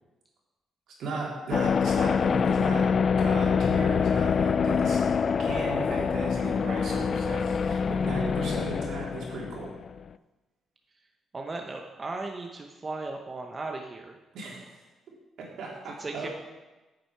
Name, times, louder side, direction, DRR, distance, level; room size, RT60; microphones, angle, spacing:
voice 1, 1.0-5.0 5.4-9.7 14.3-14.8 15.4-16.3, right 2 dB, 75° right, -3 dB, 3.0 m, -36 dB
sound 1, 1.5-10.1, left 6 dB, 45° left, 0.3 m, -25 dB
voice 2, 11.3-14.2 16.0-16.3, right 3 dB, 30° right, 2 dB, 0.8 m, -36 dB
8.8 x 7.8 x 4.7 m, 1.1 s
cardioid pair, 90°, 0 cm